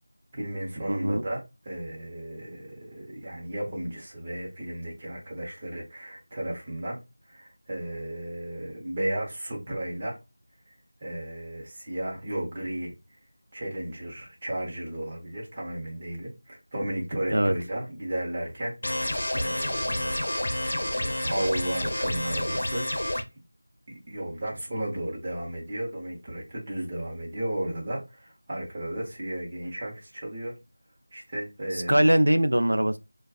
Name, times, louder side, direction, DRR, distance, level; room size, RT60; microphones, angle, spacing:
voice 1, 0.3-7.0 7.3-10.2 11.0-12.9 13.5-22.8 24.1-30.5 31.1-32.1, right 1 dB, 20° right, 1.0 m, -34 dB
voice 2, 0.9-1.2 17.3-17.6 31.7-33.0, right 1 dB, 85° right, 0.4 m, -22 dB
sound 1, 18.8-23.2, left 1 dB, 65° left, 0.8 m, -29 dB
4.1 x 2.3 x 2.4 m
figure-of-eight pair, 175°, 0 cm